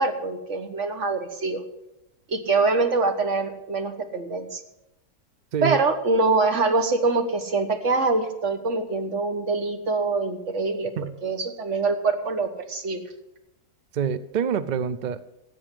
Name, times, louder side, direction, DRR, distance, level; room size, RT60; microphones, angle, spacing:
voice 1, 0.0-1.6 2.3-4.6 5.6-10.9 11.2-13.0, right 3 dB, 50° right, 7 dB, 1.6 m, -24 dB
voice 2, 5.5-5.8 11.0-11.2 13.9-15.3, right 7 dB, 85° right, 14 dB, 0.4 m, -26 dB
13.5 x 8.2 x 7.6 m, 0.90 s
omnidirectional pair, 1.6 m